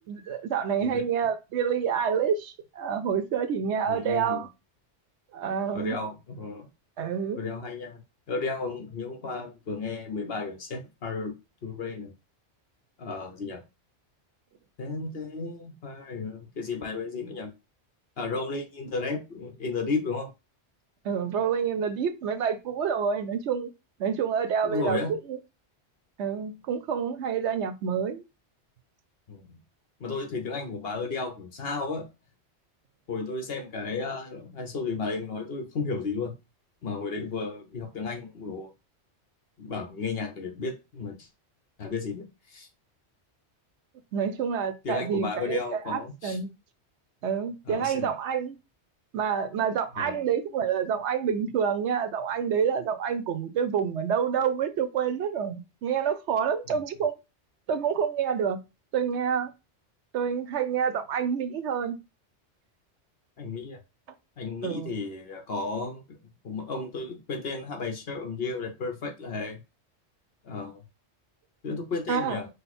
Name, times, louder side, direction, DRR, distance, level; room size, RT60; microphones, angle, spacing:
voice 1, 0.1-4.5 5.3-6.0 7.0-7.4 21.0-23.7 24.0-25.4 26.2-28.2 44.1-46.5 47.2-48.6 49.1-57.1 57.7-58.6 58.9-59.5 60.1-62.0 64.6-65.0 72.1-72.4, right 7 dB, 75° right, 0.9 m, -28 dB
voice 2, 3.9-4.4 5.7-6.7 7.4-8.0 8.3-11.4 11.6-12.1 13.0-13.6 14.8-17.5 18.2-20.3 24.6-25.1 29.3-29.6 30.0-32.1 33.1-36.3 36.8-38.7 39.6-41.3 41.8-42.7 44.8-46.4 47.7-48.1 50.0-50.2 56.7-56.8 63.4-63.8 64.4-69.6 70.4-70.8 71.6-72.5, left 4 dB, 60° left, 1.2 m, -33 dB
5.3 x 2.1 x 4.2 m
omnidirectional pair, 1.2 m